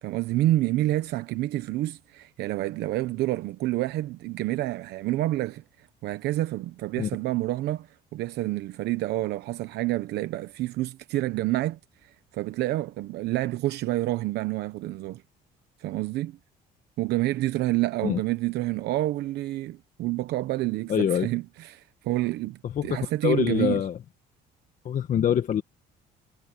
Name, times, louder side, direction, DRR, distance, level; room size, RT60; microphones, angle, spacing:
voice 1, 0.0-15.2 15.8-16.4 17.0-23.8, right 16 dB, 80° right, 1.0 m, -28 dB
voice 2, 20.9-21.3 22.6-24.0 24.8-25.6, left 9 dB, 50° left, 1.6 m, -25 dB
cardioid pair, 110°, 17 cm